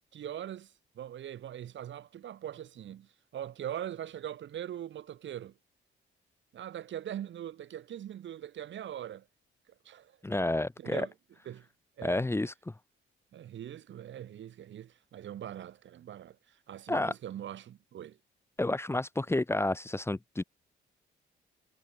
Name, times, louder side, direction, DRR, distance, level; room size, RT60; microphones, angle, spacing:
voice 1, 0.1-5.5 6.5-9.3 9.8-10.2 10.8-11.1 11.4-11.7 12.0-12.3 13.3-18.2, right 10 dB, 70° right, 6.5 m, -42 dB
voice 2, 10.2-11.1 12.0-12.5 16.9-17.1 18.6-20.4, left 2 dB, 10° left, 1.5 m, -30 dB
cardioid pair, 90°, 20 cm